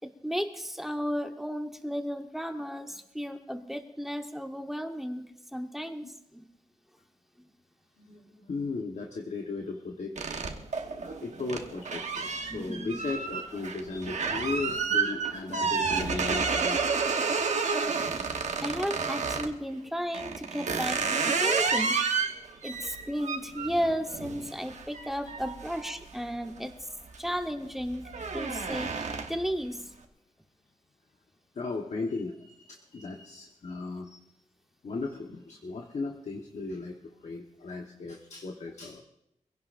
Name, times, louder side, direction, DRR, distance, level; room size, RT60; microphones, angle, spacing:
voice 1, 0.0-5.2 5.5-6.1 6.3-6.5 12.5-13.0 18.6-22.2 22.6-26.7 27.2-28.0 28.3-29.8, equal, ahead, 5 dB, 1.1 m, -34 dB
voice 2, 8.0-10.2 11.0-17.1 22.5-22.7 25.2-25.3 26.5-26.6 31.5-34.2 34.8-39.0, left 3 dB, 65° left, 1 dB, 1.2 m, -36 dB
sound 1, 10.2-19.5 20.1-26.6 27.0-27.4 27.7-29.5, right 5 dB, 70° right, 1.2 m, -30 dB
24.0 x 16.5 x 2.6 m, 0.83 s
wide cardioid pair, 120°, 12 cm